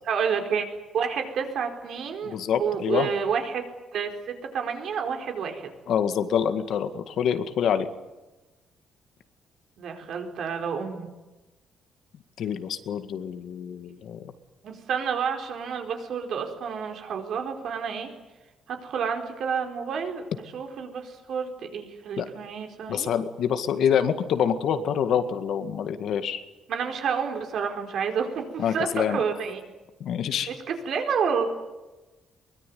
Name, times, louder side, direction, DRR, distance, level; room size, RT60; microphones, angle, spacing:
voice 1, 0.1-0.7 0.9-3.6 3.9-5.7 9.8-11.1 14.6-18.1 18.7-20.2 20.5-23.1 26.7-29.6 30.5-31.4, right 6 dB, 55° right, 4 dB, 4.5 m, -29 dB
voice 2, 2.2-3.1 5.9-7.9 12.4-14.2 22.2-22.3 22.9-26.4 28.6-29.2 30.0-30.5, left 8 dB, 60° left, 9 dB, 1.9 m, -26 dB
23.5 x 21.5 x 9.5 m, 1.1 s
cardioid pair, 175°, 0 cm